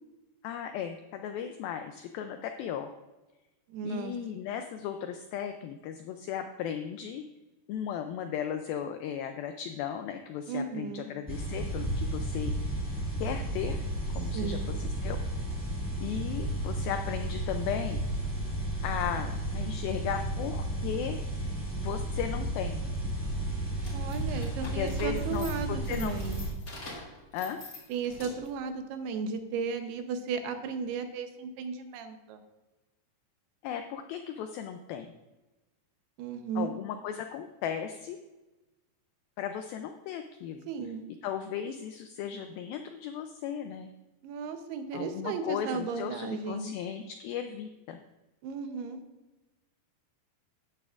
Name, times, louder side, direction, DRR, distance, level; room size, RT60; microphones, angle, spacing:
voice 1, 0.4-2.9 3.8-7.2 7.7-12.8 13.2-13.8 14.2-15.2 16.0-18.0 18.8-21.5 21.8-22.8 24.7-26.2 27.3-27.6 33.6-35.1 36.6-38.2 39.4-40.6 41.2-43.9 44.9-48.0, left 8 dB, 85° left, 7 dB, 2.1 m, -36 dB
voice 2, 3.7-4.1 10.5-11.1 14.3-14.7 23.9-26.4 27.9-32.4 36.2-36.7 40.7-41.0 44.2-46.7 48.4-49.0, right 5 dB, 80° right, 7 dB, 2.7 m, -35 dB
sound 1, 11.3-26.5, right 1 dB, 5° left, 1.0 m, -33 dB
sound 2, 23.8-28.6, left 2 dB, 30° left, 2.4 m, -46 dB
13.5 x 9.3 x 2.4 m, 1.1 s
omnidirectional pair, 4.8 m